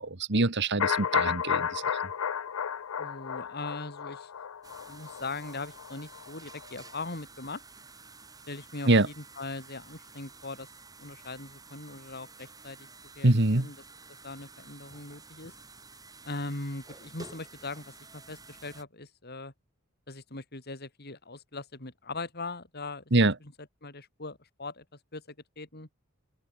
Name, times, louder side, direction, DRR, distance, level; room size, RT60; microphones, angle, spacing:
voice 1, 0.0-2.0 8.9-9.1 13.2-13.7 23.1-23.3, right 2 dB, 55° right, 1.7 m, -24 dB
sound 1, 0.8-6.7 7.0-7.1, left 8 dB, 85° left, 0.6 m, -32 dB
voice 2, 3.0-4.3 4.9-7.6 8.5-10.7 11.0-12.9 13.2-13.8 14.2-15.5 16.2-19.5 20.1-23.5 23.8-24.8 25.1-25.9, left 3 dB, 50° left, 3.6 m, -40 dB
sound 2, 4.6-18.8, right 4 dB, 15° right, 8.0 m, -51 dB
open air
head